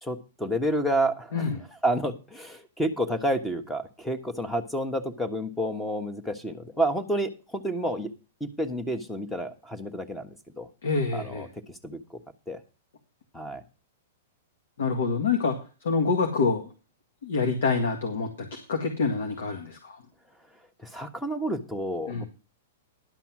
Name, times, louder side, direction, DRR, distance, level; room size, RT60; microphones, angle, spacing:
voice 1, 0.0-1.4 1.8-8.1 8.4-10.7 11.1-11.5 11.8-12.2 12.5-12.6 13.3-13.6 20.9-22.2, right 1 dB, 5° left, 9 dB, 1.3 m, -29 dB
voice 2, 1.3-1.6 10.8-11.5 14.8-15.6 15.8-16.7 17.2-20.0 22.1-22.2, left 4 dB, 75° left, 4 dB, 1.9 m, -26 dB
11.5 x 5.8 x 6.0 m, 0.33 s
hypercardioid pair, 130°, 0 cm